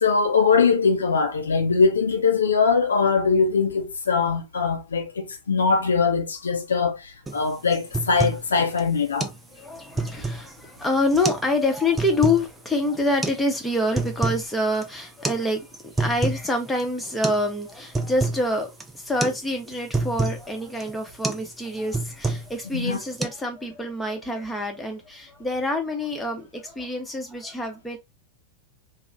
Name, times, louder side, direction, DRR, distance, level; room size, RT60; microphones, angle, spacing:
voice 1, 0.0-9.3 22.7-23.0, left 5 dB, 70° left, 0.5 m, -21 dB
sound 1, 7.3-7.4 7.7-8.5 8.8-8.9 9.2-9.4 9.8-10.5 11.1-11.5 11.8-12.4 13.2-13.4 13.8-14.5 14.7-14.9 15.2-15.4 15.7-16.5 16.8-16.9 17.2-17.5 17.7-18.4 18.8-19.0 19.2-19.4 19.7-20.4 20.8-21.0 21.2-21.5 21.7-22.6 22.9-23.3, right 3 dB, 10° right, 0.4 m, -27 dB
voice 2, 9.2-28.0, left 1 dB, 5° left, 0.8 m, -26 dB
3.0 x 2.0 x 2.5 m
figure-of-eight pair, 90°, 0 cm